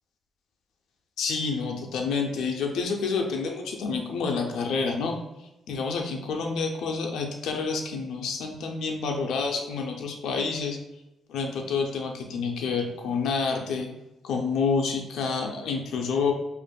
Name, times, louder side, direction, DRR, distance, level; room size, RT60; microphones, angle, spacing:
voice 1, 1.2-5.2 5.7-10.8 11.3-13.9 14.2-16.3, left 4 dB, 85° left, 2 dB, 0.5 m, -28 dB
5.1 x 2.5 x 2.2 m, 0.97 s
cardioid pair, 100°, 0 cm